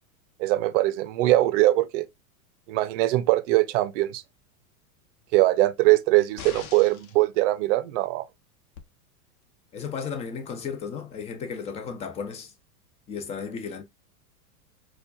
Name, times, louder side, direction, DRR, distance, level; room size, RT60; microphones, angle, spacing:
voice 1, 0.4-2.1 2.7-4.2 5.3-8.2, right 17 dB, 55° right, 0.6 m, -22 dB
sound 1, 6.4-7.2 8.8-8.9, left 7 dB, 70° left, 0.9 m, -41 dB
voice 2, 9.7-12.5 13.1-13.8, left 6 dB, 15° left, 0.4 m, -34 dB
4.3 x 2.3 x 2.3 m
hypercardioid pair, 110°, 45 cm